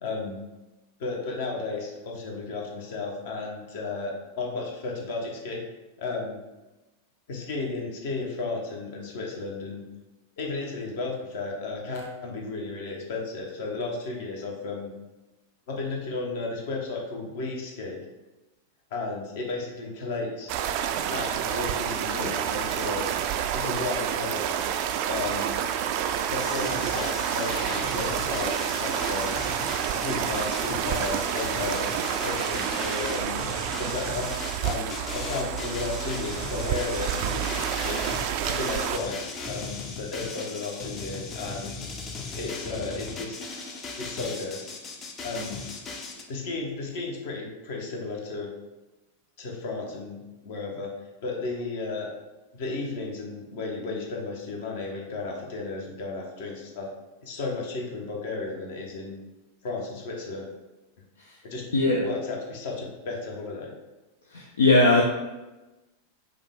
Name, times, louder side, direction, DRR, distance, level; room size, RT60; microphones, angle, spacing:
voice 1, 0.0-0.4 1.0-5.6 6.0-6.4 7.3-9.9 10.4-14.9 15.7-18.0 18.9-20.5 21.1-23.0 23.5-24.4 25.1-25.6 26.3-29.4 30.0-31.8 32.2-33.4 33.8-34.3 34.6-38.0 38.5-41.8 42.3-43.4 44.0-44.7 45.2-45.6 46.3-48.5 49.4-50.9 51.2-52.1 52.5-56.9 57.2-59.2 59.6-60.5 61.4-61.6 62.0-63.7, left 3 dB, 55° left, 0 dB, 1.0 m, -33 dB
sound 1, 20.5-39.0, right 9 dB, 45° right, 0.3 m, -29 dB
sound 2, 26.4-46.2, left 3 dB, 25° left, 0.6 m, -37 dB
voice 2, 61.7-62.0 64.3-65.0, left 2 dB, 70° left, -1 dB, 0.5 m, -19 dB
5.3 x 2.4 x 3.5 m, 1.1 s
figure-of-eight pair, 90°, 0 cm